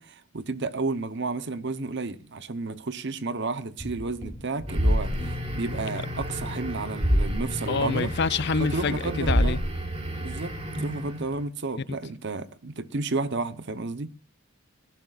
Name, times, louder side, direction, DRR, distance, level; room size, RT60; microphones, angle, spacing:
voice 1, 0.0-8.1 8.6-9.6 10.2-14.1, right 3 dB, 50° right, 0.9 m, -32 dB
sound 1, 3.8-7.8 8.1-8.2, equal, 25° left, 2.9 m, -40 dB
sound 2, 4.7-11.4, equal, 25° right, 3.5 m, -28 dB
voice 2, 7.7-9.6 11.9-12.0, left 4 dB, 50° left, 0.5 m, -27 dB
18.0 x 15.0 x 2.5 m
head